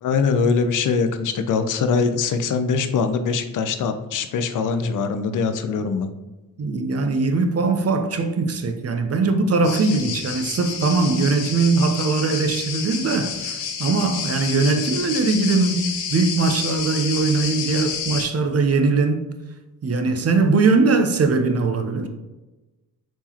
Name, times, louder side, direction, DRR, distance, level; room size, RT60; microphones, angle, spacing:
voice 1, 0.0-6.1, left 5 dB, 40° left, 0.5 m, -22 dB
voice 2, 6.6-19.3 19.8-22.1, right 3 dB, 30° right, 0.6 m, -21 dB
sound 1, 9.6-18.2, left 6 dB, 65° left, 0.8 m, -30 dB
3.5 x 3.0 x 2.9 m
hypercardioid pair, 45°, 49 cm